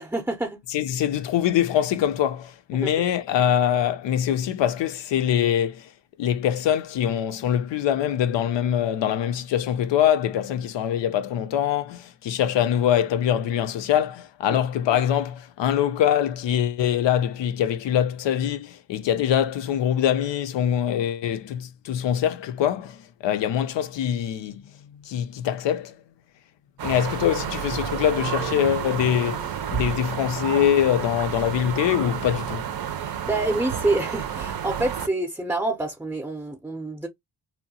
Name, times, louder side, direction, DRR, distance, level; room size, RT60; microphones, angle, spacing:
voice 1, 0.0-0.6 2.7-3.1 14.5-14.6 32.9-37.1, right 2 dB, 5° right, 0.6 m, -27 dB
voice 2, 0.7-5.9 6.2-24.6 25.0-26.0 26.8-32.7, left 10 dB, 75° left, 0.5 m, -23 dB
sound 1, 26.8-35.1, right 9 dB, 55° right, 0.6 m, -30 dB
2.8 x 2.1 x 2.7 m
cardioid pair, 65°, 44 cm